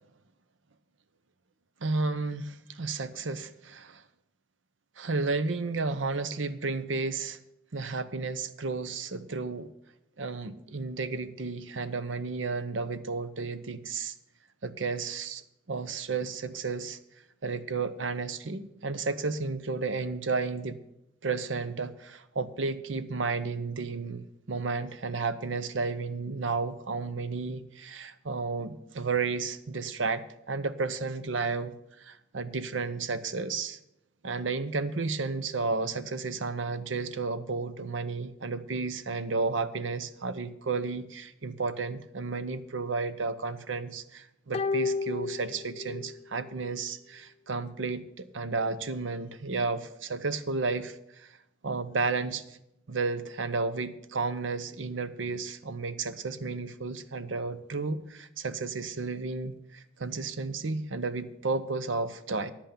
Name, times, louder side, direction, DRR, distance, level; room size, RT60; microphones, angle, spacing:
voice 1, 1.8-4.0 5.0-7.4 7.7-9.7 10.2-14.1 14.6-15.4 15.7-17.0 17.4-20.8 21.2-33.8 34.2-51.4 51.6-52.4 52.9-62.5, right 4 dB, 80° right, 12 dB, 0.8 m, -32 dB
sound 1, 44.5-46.2 46.5-46.6, left 4 dB, 35° left, 0.3 m, -31 dB
10.0 x 8.0 x 6.9 m, 0.84 s
head